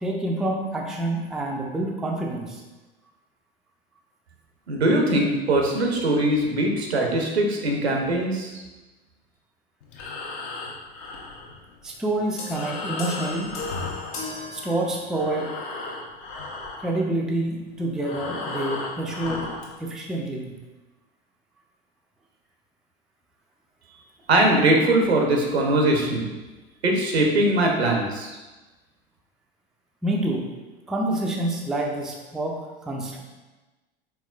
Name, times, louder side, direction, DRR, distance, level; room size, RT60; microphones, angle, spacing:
voice 1, 0.0-2.6 11.8-13.6 14.5-15.5 16.8-19.5 19.8-20.5 30.0-30.5 30.9-33.2, right 1 dB, ahead, 0 dB, 0.4 m, -27 dB
voice 2, 4.7-8.6 24.3-26.3 26.8-28.4, right 1 dB, 85° right, 1 dB, 0.8 m, -21 dB
Breathing, 9.8-14.8 15.1-19.8, left 3 dB, 55° left, 0.8 m, -35 dB
sound 1, 12.4-15.4, left 3 dB, 40° left, 1.4 m, -37 dB
4.6 x 3.6 x 2.3 m, 1.2 s
figure-of-eight pair, 80°, 31 cm